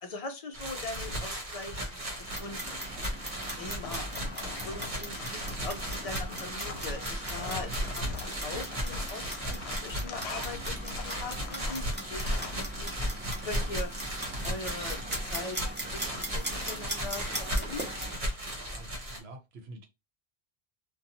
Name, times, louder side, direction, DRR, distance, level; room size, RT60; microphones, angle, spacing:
voice 1, 0.0-1.8 2.2-2.8 3.6-4.1 4.6-12.9 13.4-13.9 14.4-15.6 15.9-17.3 17.6-17.9, left 3 dB, 50° left, 0.4 m, -41 dB
sound 1, 0.5-19.2, equal, 50° right, 1.0 m, -35 dB
Clock, 2.2-18.2, right 1 dB, 10° right, 0.6 m, -41 dB
sound 2, 3.6-13.1, left 4 dB, 75° left, 0.8 m, -44 dB
voice 2, 18.6-19.9, right 2 dB, 75° right, 0.9 m, -48 dB
2.6 x 2.2 x 2.7 m
omnidirectional pair, 1.1 m